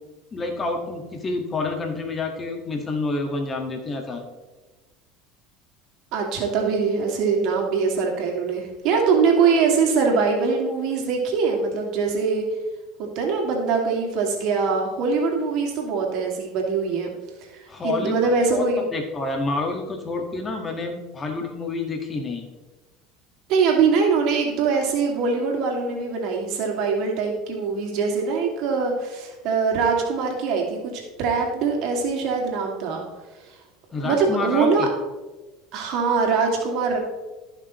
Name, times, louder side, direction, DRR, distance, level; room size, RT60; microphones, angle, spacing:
voice 1, 0.3-4.2 17.7-18.2 18.5-22.5 33.9-34.9, left 3 dB, 30° left, 3 dB, 1.7 m, -28 dB
voice 2, 6.1-12.5 13.0-17.1 17.8-18.9 23.5-33.0 34.0-34.9 35.7-37.0, right 5 dB, 60° right, 0 dB, 2.4 m, -22 dB
15.5 x 6.0 x 3.1 m, 1.2 s
hypercardioid pair, 80°, 0 cm